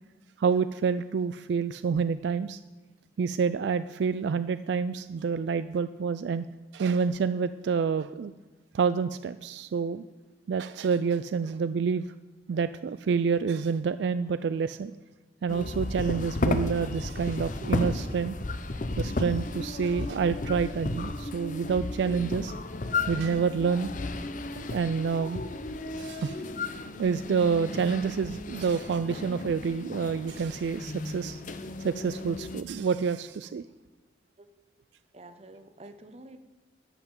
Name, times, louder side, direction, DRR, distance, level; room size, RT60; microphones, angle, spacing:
voice 1, 0.4-2.6 3.2-6.5 6.7-8.3 8.7-10.0 10.5-12.1 12.5-14.9 15.4-18.3 19.0-22.5 23.1-23.9 24.6-25.4 26.0-26.4 27.0-31.4 31.8-33.6, right 5 dB, 70° right, 13 dB, 0.3 m, -28 dB
sound 1, 15.5-32.6, left 2 dB, 45° left, 0.7 m, -34 dB
voice 2, 35.1-36.4, right 2 dB, 35° right, 9 dB, 0.9 m, -48 dB
12.0 x 5.9 x 8.8 m, 1.2 s
head